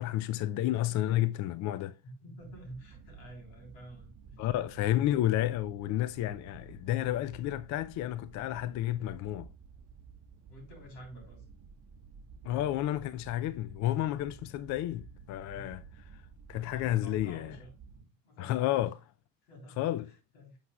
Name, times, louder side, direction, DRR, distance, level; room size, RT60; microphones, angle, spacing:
voice 1, 0.0-2.0 4.4-9.5 12.4-15.8 16.5-17.6 18.4-18.9 19.8-20.1, left 13 dB, 45° left, 0.4 m, -31 dB
voice 2, 2.0-4.4 10.5-11.5 15.5-15.7 16.9-17.7 18.2-18.9 19.4-20.6, equal, 85° left, 3.5 m, -49 dB
sound 1, 2.4-18.0, right 6 dB, 40° right, 0.9 m, -53 dB
9.3 x 6.4 x 2.3 m
supercardioid pair, 85°, 42 cm